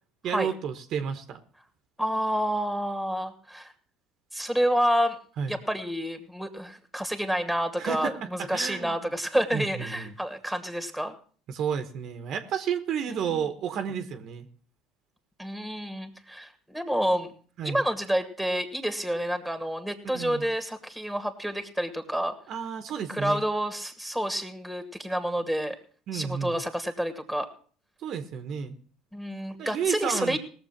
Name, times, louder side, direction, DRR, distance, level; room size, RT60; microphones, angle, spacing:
voice 1, 0.2-1.4 5.4-5.5 7.8-9.0 9.5-10.1 11.5-14.5 17.6-17.8 20.0-20.4 22.5-23.4 26.1-26.6 28.0-28.8 29.6-30.4, right 7 dB, 55° right, 8 dB, 1.2 m, -31 dB
voice 2, 2.0-3.7 4.3-5.2 5.5-11.1 13.1-13.4 15.4-17.3 17.6-22.3 23.1-25.8 26.1-27.5 29.1-30.4, equal, ahead, 7 dB, 2.1 m, -29 dB
18.0 x 7.2 x 5.9 m, 0.43 s
supercardioid pair, 95°, 0 cm